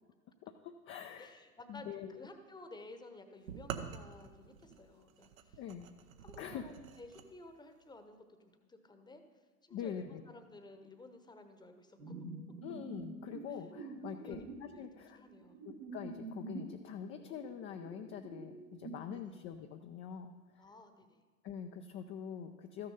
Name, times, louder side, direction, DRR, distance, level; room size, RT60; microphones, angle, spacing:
voice 1, 0.4-1.3 1.7-2.3 5.6-5.9 6.4-6.6 9.7-10.2 12.6-15.2 15.6-20.6 21.4-22.9, left 8 dB, 30° left, 5 dB, 0.5 m, -45 dB
voice 2, 1.2-5.6 6.2-12.1 14.0-14.4 14.7-14.9 15.1-15.6 19.1-19.3 20.6-21.2, left 2 dB, 10° left, 7 dB, 1.0 m, -54 dB
sound 1, 3.5-7.3, right 8 dB, 65° right, 0.9 m, -47 dB
sound 2, 12.0-16.8 17.2-18.9, right 2 dB, 85° right, 2.6 m, -47 dB
13.5 x 6.6 x 5.5 m, 1.4 s
figure-of-eight pair, 80°, 44 cm